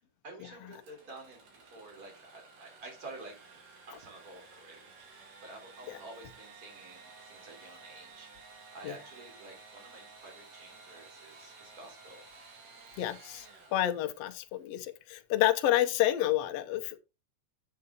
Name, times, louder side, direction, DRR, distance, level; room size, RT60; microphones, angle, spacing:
voice 1, 0.2-3.3 3.9-12.3, right 2 dB, 25° right, 3.6 m, -50 dB
Engine / Sawing, 0.7-14.4, right 4 dB, 70° right, 4.0 m, -54 dB
voice 2, 13.0-13.5 13.7-17.0, left 13 dB, 80° left, 1.4 m, -29 dB
7.7 x 6.8 x 3.7 m
omnidirectional pair, 4.0 m